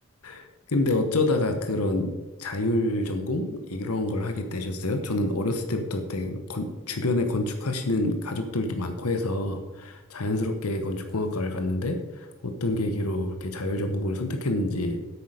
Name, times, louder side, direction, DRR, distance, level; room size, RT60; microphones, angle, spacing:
voice 1, 0.2-2.1 2.4-15.0, left 2 dB, 85° left, 6 dB, 1.1 m, -27 dB
10.0 x 8.5 x 5.1 m, 1.1 s
head